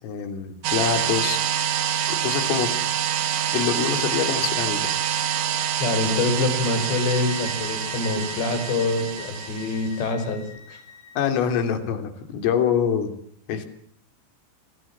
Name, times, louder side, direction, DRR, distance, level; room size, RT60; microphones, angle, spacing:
voice 1, 0.0-1.4 2.1-2.7 3.5-4.9 11.2-13.1 13.5-13.7, left 8 dB, 90° left, 7 dB, 5.7 m, -25 dB
sound 1, 0.6-10.0, right 10 dB, 70° right, 3.8 m, -26 dB
voice 2, 5.8-10.8, left 3 dB, 60° left, 8 dB, 7.5 m, -25 dB
sound 2, 6.4-11.3, left 6 dB, 40° left, 5.6 m, -42 dB
29.5 x 27.5 x 7.4 m, 0.63 s
omnidirectional pair, 5.7 m